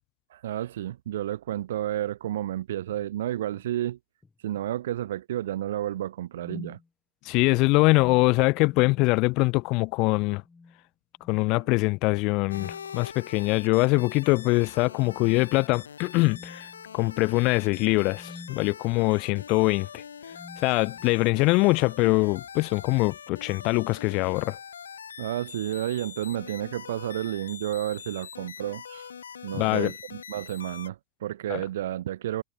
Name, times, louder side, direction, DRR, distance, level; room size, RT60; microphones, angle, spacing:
voice 1, 0.3-4.0 4.4-6.8 25.2-29.1 29.4-32.4, right 12 dB, 75° right, 1.7 m, -31 dB
sound 1, 2.9-3.1 3.5-3.7 4.2-4.7 6.3-6.9 7.8-9.1 9.4-9.7 10.4-10.8 11.2-11.5 12.5-13.0 14.2-14.6 15.1-15.2 16.1-18.7 19.6-19.8 20.3-21.3, left 4 dB, 15° left, 5.2 m, -49 dB
voice 2, 7.3-10.4 11.3-16.7 16.9-20.0 20.6-24.6 29.6-29.9 31.5-31.6, left 25 dB, 50° left, 0.8 m, -23 dB
sound 2, 12.5-30.9, left 7 dB, 90° left, 3.9 m, -43 dB
hypercardioid pair, 100°, 0 cm